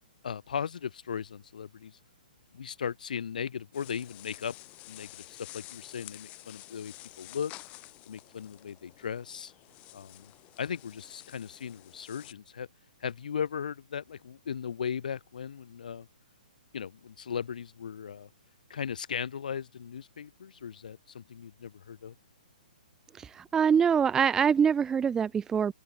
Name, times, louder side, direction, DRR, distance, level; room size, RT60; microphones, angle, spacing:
voice 1, 0.2-2.0 2.5-4.6 4.9-7.5 8.1-9.5 9.9-10.3 10.6-12.7 13.0-16.1 16.7-18.3 18.7-22.2, left 7 dB, 60° left, 1.9 m, -37 dB
sound 1, 3.7-12.3, left 21 dB, 25° left, 3.3 m, -50 dB
voice 2, 23.2-25.7, right 7 dB, 10° right, 0.5 m, -24 dB
open air
figure-of-eight pair, 125°, 5 cm